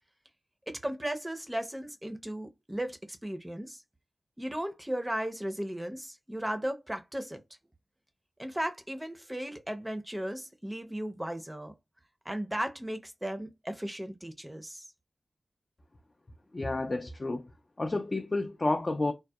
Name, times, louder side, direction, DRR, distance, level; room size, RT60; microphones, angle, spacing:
voice 1, 0.7-3.8 4.4-7.4 8.4-11.7 12.2-14.8, right 1 dB, 15° right, 0.5 m, -36 dB
voice 2, 16.5-17.4 17.8-19.1, left 2 dB, 45° left, 0.3 m, -30 dB
2.7 x 2.1 x 2.2 m
cardioid pair, 50°, 0 cm